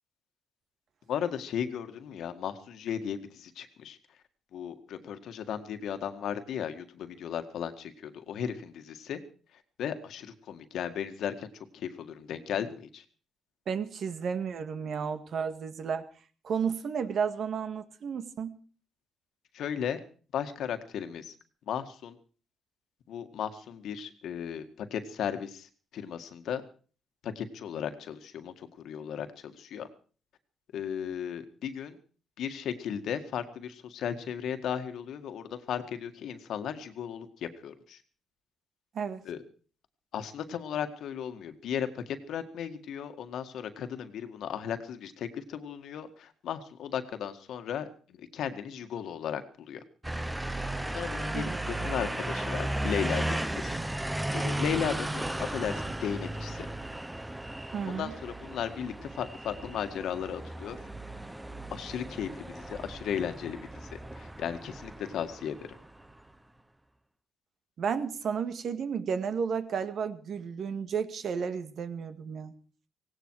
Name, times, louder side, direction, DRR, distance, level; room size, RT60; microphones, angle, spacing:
voice 1, 1.1-4.0 4.5-9.2 9.8-13.0 19.5-20.0 20.3-21.3 21.7-22.2 23.1-26.6 27.2-29.9 30.7-32.0 32.4-38.0 39.2-39.4 40.1-49.8 50.5-53.7 54.3-56.7 57.8-60.8 61.7-65.8, left 8 dB, 75° left, 9 dB, 1.9 m, -36 dB
voice 2, 13.7-16.1 16.4-18.6 38.9-39.2 51.3-51.6 57.7-58.1 67.8-72.5, right 6 dB, 60° right, 10 dB, 1.9 m, -32 dB
sound 1, 50.0-66.2, right 1 dB, 10° right, 1.1 m, -35 dB
17.5 x 17.5 x 4.8 m, 0.40 s
cardioid pair, 90°, 0 cm